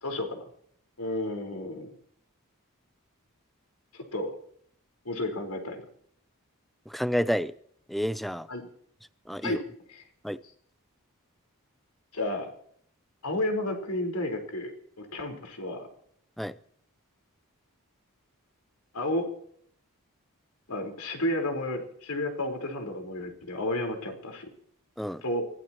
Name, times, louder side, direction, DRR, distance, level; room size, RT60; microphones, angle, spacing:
voice 1, 0.0-0.5 1.0-1.9 3.9-4.3 5.0-5.8 8.5-8.6 9.4-9.6 9.9-10.0 12.1-12.5 13.2-14.7 15.0-15.9 18.9-19.3 20.7-24.5 25.2-25.5, left 1 dB, 75° left, 4.7 m, -32 dB
voice 2, 6.9-7.5 7.9-8.5 9.3-9.6 10.2-10.4 16.4-16.5 25.0-25.2, equal, ahead, 0.6 m, -29 dB
24.5 x 17.0 x 3.1 m
head